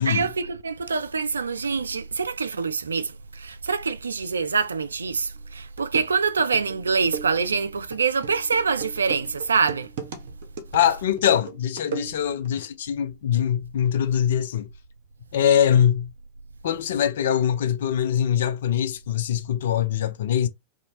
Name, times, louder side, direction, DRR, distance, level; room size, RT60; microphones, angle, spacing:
voice 1, 0.1-9.9, right 5 dB, 75° right, 0.3 m, -25 dB
sound 1, 5.4-5.5 5.8-12.5, right 7 dB, 55° right, 0.8 m, -37 dB
voice 2, 10.7-14.7 15.3-16.1 16.6-20.5, left 9 dB, 60° left, 0.5 m, -23 dB
2.7 x 2.6 x 2.8 m
figure-of-eight pair, 90°, 0 cm